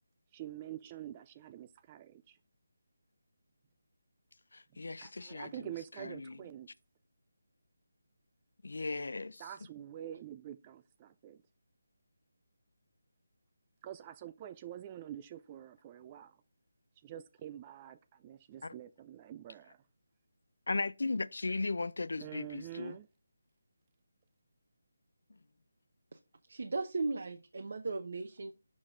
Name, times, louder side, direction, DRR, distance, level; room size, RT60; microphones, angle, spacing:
voice 1, 0.3-2.4 5.0-6.7 9.4-11.4 13.8-16.4 17.0-19.8 22.2-23.1, right 11 dB, 20° right, 0.3 m, -46 dB
voice 2, 4.5-5.5 6.0-6.4 8.6-9.4 18.6-18.7 20.7-23.0, left 3 dB, 70° left, 0.5 m, -36 dB
voice 3, 26.5-28.5, right 3 dB, 55° right, 0.9 m, -36 dB
6.3 x 6.2 x 3.7 m
figure-of-eight pair, 170°, 0 cm